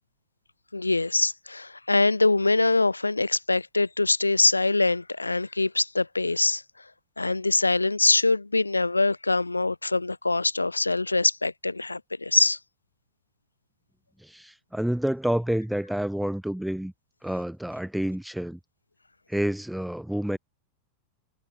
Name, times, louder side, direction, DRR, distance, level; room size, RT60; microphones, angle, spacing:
voice 1, 0.7-6.6 7.2-12.6, left 3 dB, 80° left, 0.9 m, -23 dB
voice 2, 14.2-16.9 17.2-18.6 19.3-20.4, right 1 dB, ahead, 2.7 m, -28 dB
figure-of-eight pair, 90°, 0 cm